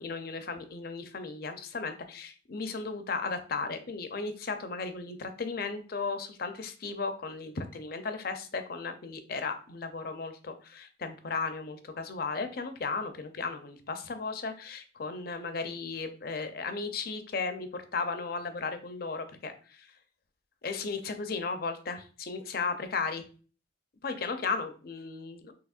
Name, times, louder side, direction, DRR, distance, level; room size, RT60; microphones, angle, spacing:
voice 1, 0.0-20.0 20.6-23.2 24.0-25.5, left 4 dB, 50° left, 8 dB, 0.5 m, -35 dB
6.3 x 2.9 x 2.4 m, 0.39 s
head